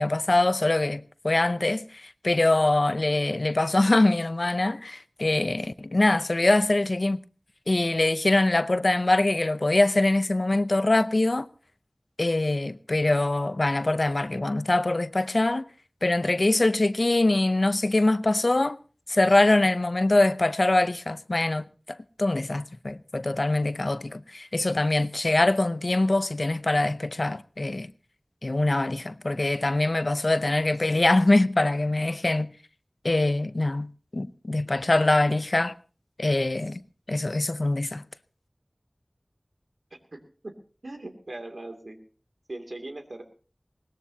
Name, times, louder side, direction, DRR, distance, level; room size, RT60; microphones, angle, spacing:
voice 1, 0.0-7.2 7.7-11.5 12.2-15.7 16.0-18.8 19.1-27.9 28.4-32.5 33.0-35.7 36.2-36.8 37.1-38.0, left 2 dB, 70° left, 0.6 m, -23 dB
voice 2, 40.1-40.5 40.8-42.0 42.5-43.2, right 2 dB, 85° right, 2.6 m, -39 dB
21.0 x 18.5 x 2.8 m
wide cardioid pair, 40°, 0 cm